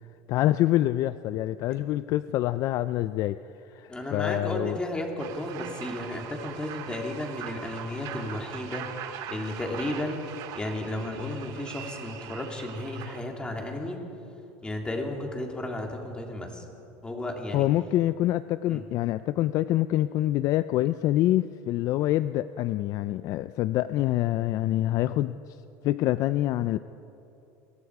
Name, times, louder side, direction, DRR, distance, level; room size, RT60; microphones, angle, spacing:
voice 1, 0.3-3.4 3.7-4.8 17.5-25.4 25.8-26.8, left 14 dB, 50° left, 14 dB, 0.5 m, -26 dB
voice 2, 3.9-10.2 10.5-14.0 14.6-16.6 17.0-17.7 18.7-18.8, left 1 dB, 10° left, 1 dB, 3.2 m, -33 dB
sound 1, 5.2-13.2, right 9 dB, 60° right, 1.9 m, -41 dB
28.0 x 23.5 x 4.9 m, 2.9 s
supercardioid pair, 130°, 7 cm